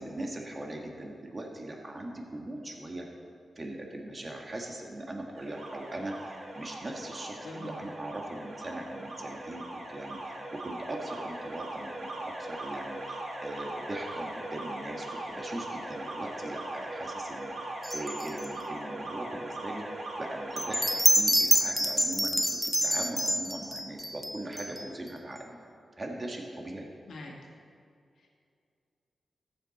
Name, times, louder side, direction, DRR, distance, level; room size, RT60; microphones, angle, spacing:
voice 1, 0.0-3.1 3.6-25.6 26.0-26.9, right 1 dB, 35° right, 1 dB, 1.9 m, -40 dB
Alarm, 5.3-21.0, right 1 dB, 55° right, 2.4 m, -40 dB
voice 2, 7.4-7.8 27.1-27.3 28.2-28.3, left 2 dB, 80° left, -1 dB, 1.9 m, -43 dB
sound 1, 17.8-18.5 20.6-25.1, equal, ahead, 0.6 m, -27 dB
14.5 x 7.2 x 4.3 m, 2.4 s
cardioid pair, 60°, 0 cm